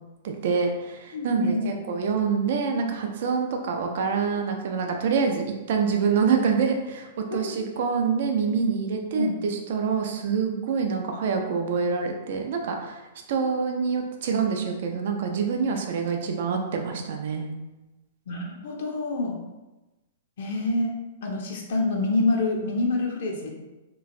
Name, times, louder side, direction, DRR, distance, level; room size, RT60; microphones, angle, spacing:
voice 1, 0.2-13.0 13.3-17.5, right 5 dB, 50° right, 3 dB, 0.4 m, -26 dB
voice 2, 1.1-1.7 7.3-7.6 9.2-9.4 18.3-19.4 20.4-23.5, left 2 dB, 55° left, 0 dB, 0.5 m, -27 dB
2.9 x 2.4 x 2.5 m, 1.1 s
figure-of-eight pair, 105°, 0 cm